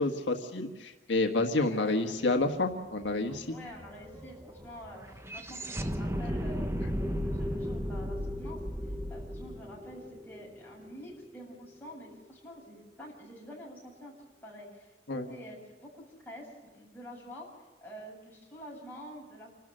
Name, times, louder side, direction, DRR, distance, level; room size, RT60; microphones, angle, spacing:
voice 1, 0.0-3.5 15.1-15.3, left 2 dB, 85° left, 4 dB, 1.5 m, -29 dB
voice 2, 1.5-2.2 3.5-8.6 9.1-17.5 17.8-19.5, equal, 10° left, -4 dB, 7.4 m, -48 dB
sound 1, 2.4-2.5 2.7-10.9, equal, 15° right, 1.1 m, -35 dB
28.0 x 13.0 x 7.7 m, 1.2 s
head